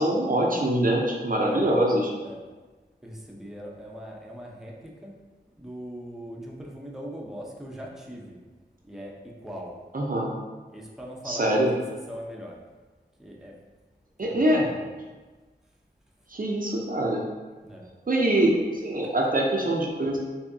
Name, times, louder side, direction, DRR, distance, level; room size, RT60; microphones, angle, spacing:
voice 1, 0.0-2.1 9.9-10.3 11.2-11.7 14.2-14.6 16.3-17.2 18.1-20.2, right 1 dB, 50° right, -1 dB, 0.6 m, -24 dB
voice 2, 3.0-5.1 5.5-8.4 8.8-9.8 10.7-12.6 13.2-13.6 14.2-14.9 17.6-17.9, equal, ahead, -3 dB, 0.7 m, -40 dB
4.6 x 2.7 x 2.7 m, 1.3 s
wide cardioid pair, 45°, 19 cm